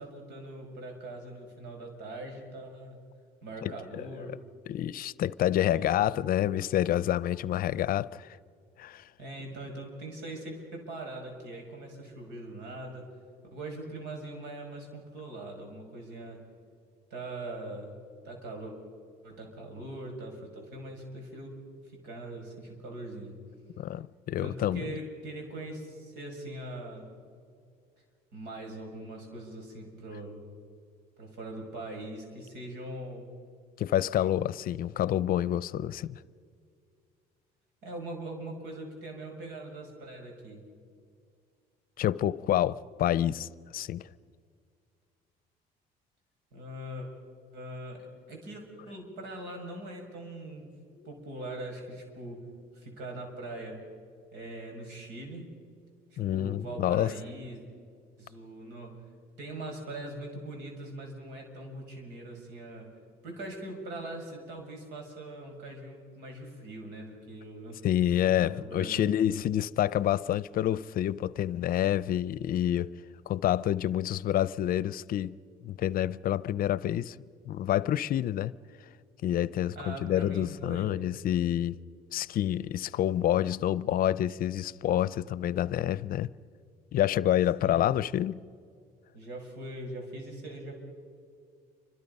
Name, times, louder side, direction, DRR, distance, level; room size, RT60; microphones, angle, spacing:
voice 1, 0.0-3.0 3.4-4.4 5.7-6.0 9.2-13.1 13.5-16.4 17.1-18.0 18.2-18.8 19.2-21.6 21.9-23.3 24.4-27.1 28.3-30.4 31.2-33.3 37.8-40.6 46.5-47.1 47.5-48.0 48.3-50.7 51.0-52.4 52.7-53.8 54.3-55.5 56.1-57.6 58.2-58.9 59.4-62.9 63.2-67.9 68.2-69.2 79.8-81.0 87.6-87.8 89.1-90.7, right 1 dB, 90° right, 5.9 m, -41 dB
voice 2, 3.6-4.4 4.7-8.4 8.8-9.1 23.8-25.0 33.8-36.2 42.0-44.1 51.0-51.1 56.2-57.1 67.8-72.9 73.3-75.4 75.6-77.2 77.5-78.5 79.2-81.8 82.1-86.3 86.9-88.4, left 12 dB, 60° left, 0.6 m, -28 dB
29.0 x 25.0 x 5.5 m
cardioid pair, 110°, 17 cm